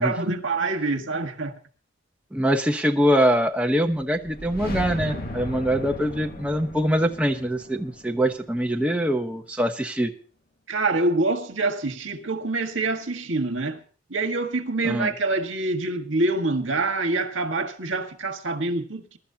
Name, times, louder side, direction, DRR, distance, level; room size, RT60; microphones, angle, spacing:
voice 1, 0.0-1.5 10.7-13.8 14.1-19.2, right 2 dB, 75° right, 1.7 m, -26 dB
voice 2, 2.3-10.1 14.8-15.1, equal, 5° right, 1.1 m, -23 dB
sound 1, 3.9-9.0, left 1 dB, 50° left, 2.2 m, -36 dB
23.0 x 12.5 x 2.9 m
head